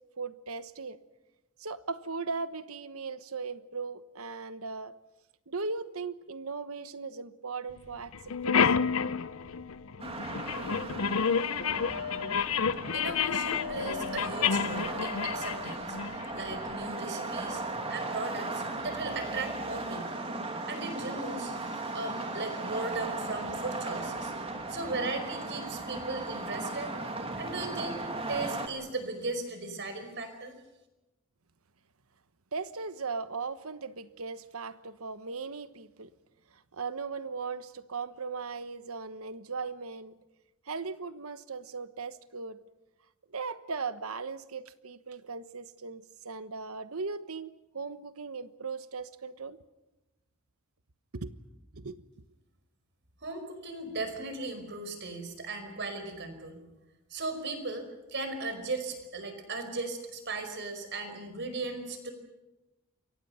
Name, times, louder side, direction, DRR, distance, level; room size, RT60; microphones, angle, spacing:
voice 1, 0.2-1.0 1.6-4.9 5.5-8.7 32.5-36.1 36.5-40.2 40.7-42.6 43.3-49.6 51.1-51.3 51.7-52.0, right 4 dB, 75° right, 1.2 m, -38 dB
sound 1, 7.8-7.9 8.1-16.8, left 6 dB, 70° left, 0.7 m, -30 dB
sound 2, 10.0-28.7, right 2 dB, 25° right, 2.6 m, -37 dB
voice 2, 12.9-24.4 24.7-26.9 27.4-28.0 28.3-30.5 53.2-56.6 57.1-62.1, right 3 dB, 50° right, 5.1 m, -37 dB
28.5 x 24.0 x 5.7 m
head